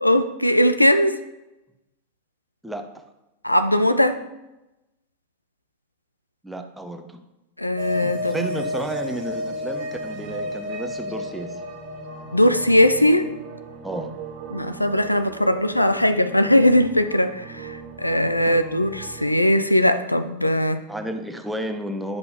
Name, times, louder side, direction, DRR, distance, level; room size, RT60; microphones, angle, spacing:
voice 1, 0.0-1.2 3.4-4.2 7.6-8.4 12.3-13.3 14.5-20.8, left 1 dB, 85° left, 10 dB, 0.4 m, -19 dB
voice 2, 6.4-7.2 8.0-11.6 13.8-14.1 18.5-18.6 20.9-22.2, right 1 dB, 5° right, 5 dB, 0.7 m, -32 dB
sound 1, 7.8-19.5, equal, 35° right, 1.5 m, -34 dB
9.7 x 5.4 x 2.8 m, 0.96 s
figure-of-eight pair, 90°, 0 cm